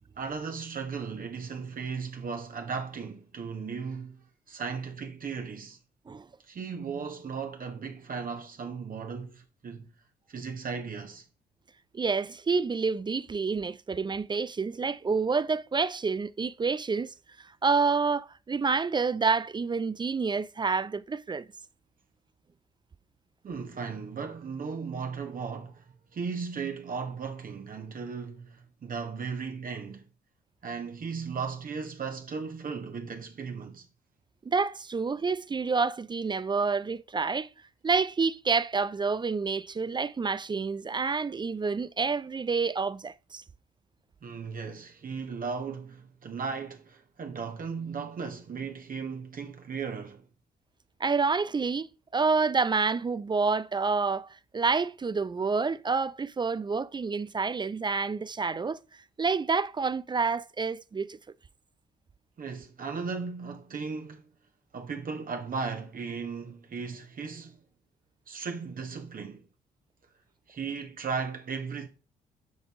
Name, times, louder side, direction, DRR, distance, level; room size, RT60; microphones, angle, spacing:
voice 1, 0.2-5.8 6.5-9.9 10.3-11.2 23.4-25.8 26.1-30.1 30.6-33.9 44.2-50.3 62.4-64.2 64.7-67.6 68.3-69.4 70.5-71.9, right 5 dB, 45° right, 1.2 m, -36 dB
voice 2, 11.9-17.1 17.6-21.5 34.5-37.5 37.8-43.4 51.0-51.9 52.1-58.8 59.2-61.2, right 4 dB, 20° right, 0.4 m, -28 dB
8.2 x 5.3 x 3.6 m
hypercardioid pair, 45°, 21 cm